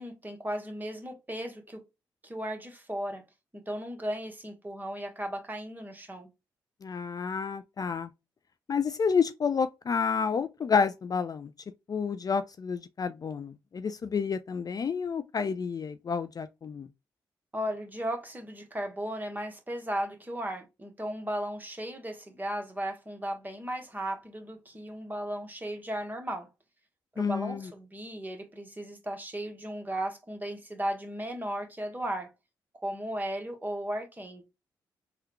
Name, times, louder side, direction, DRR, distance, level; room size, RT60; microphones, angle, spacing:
voice 1, 0.0-1.8 2.2-3.2 3.5-6.3 17.5-26.5 27.1-32.3 32.8-34.4, right 1 dB, 20° right, 1.2 m, -36 dB
voice 2, 6.8-8.1 8.7-11.5 11.9-16.9 27.2-27.7, left 6 dB, 45° left, 0.3 m, -29 dB
3.5 x 2.2 x 3.0 m
supercardioid pair, 45°, 9 cm